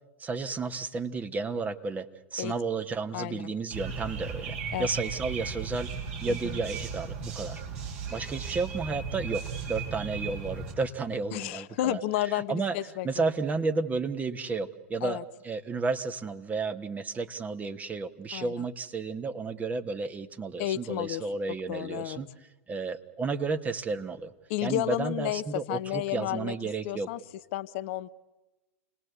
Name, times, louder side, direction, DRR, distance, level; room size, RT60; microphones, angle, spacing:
voice 1, 0.2-2.1 2.3-5.9 6.2-7.6 8.1-12.8 13.0-22.3 22.7-24.3 24.6-27.1, right 4 dB, 20° right, 9 dB, 1.4 m, -32 dB
sound 1, 3.7-10.7, right 5 dB, 55° right, 8.0 m, -36 dB
voice 2, 6.3-6.6 11.3-13.2 15.0-15.2 18.3-18.6 20.6-21.2 21.7-22.2 24.5-26.5 26.8-27.2 27.5-28.1, left 14 dB, 55° left, 13 dB, 0.8 m, -32 dB
29.0 x 19.5 x 8.3 m, 1.1 s
hypercardioid pair, 100°, 8 cm